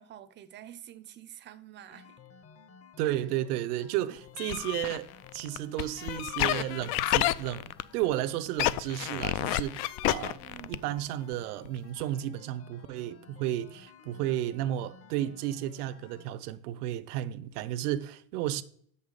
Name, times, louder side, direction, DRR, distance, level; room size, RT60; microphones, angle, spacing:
voice 1, 0.0-2.2 3.0-3.1 10.4-10.9, right 11 dB, 25° right, 0.5 m, -49 dB
sound 1, 1.9-16.3, left 6 dB, 30° left, 0.9 m, -55 dB
voice 2, 3.0-10.4 10.7-18.6, right 13 dB, 75° right, 0.7 m, -33 dB
sound 2, 4.4-8.1 8.5-11.0 11.3-11.4 11.6-11.7 12.0-12.1, left 15 dB, 50° left, 0.4 m, -30 dB
6.8 x 5.6 x 6.5 m
supercardioid pair, 120°, 45 cm